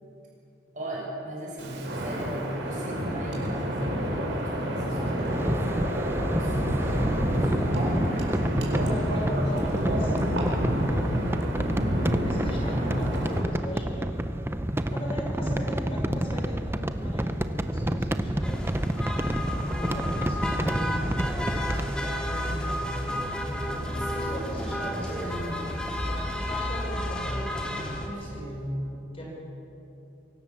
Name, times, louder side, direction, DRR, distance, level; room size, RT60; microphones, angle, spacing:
voice 1, 0.7-5.9 6.3-10.1 14.6-15.6 23.7-25.7 28.1-29.0, equal, 45° right, -5 dB, 6.6 m, -37 dB
Wind, 1.6-13.4, equal, 85° right, 4.5 m, -28 dB
sound 1, 5.3-21.9, right 1 dB, 15° right, 0.7 m, -29 dB
voice 2, 8.7-11.6 12.2-14.1 14.9-18.8 19.5-22.7 23.4-25.6 26.0-28.6 29.1-29.3, equal, 30° left, -2 dB, 5.5 m, -38 dB
sound 2, 18.4-28.1, equal, 5° left, 2.2 m, -31 dB
24.0 x 17.5 x 7.3 m, 2.8 s
head